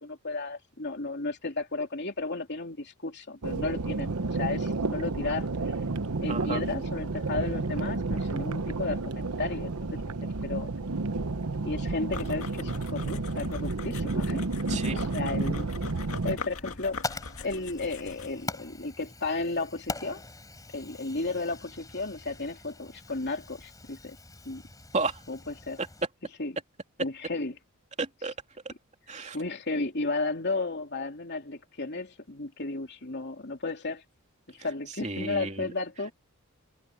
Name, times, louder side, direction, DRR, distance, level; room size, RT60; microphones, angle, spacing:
voice 1, 0.0-5.5 6.2-10.0 10.4-10.7 11.6-14.4 14.7-15.7 16.2-17.0 17.4-20.2 20.7-24.2 24.4-24.6 25.3-25.8 26.4-26.6 27.0-27.6 29.3-34.0 34.5-36.1, left 3 dB, 50° left, 3.1 m, -33 dB
sound 1, 3.4-16.4, right 3 dB, 90° right, 1.0 m, -31 dB
voice 2, 6.3-6.6 14.7-15.0 24.9-25.2 28.0-28.3 29.1-29.4 35.0-35.5, right 3 dB, 30° right, 3.0 m, -31 dB
sound 2, 12.1-18.4, left 4 dB, 75° left, 2.0 m, -42 dB
Fire, 16.6-26.0, left 3 dB, 15° left, 4.6 m, -42 dB
head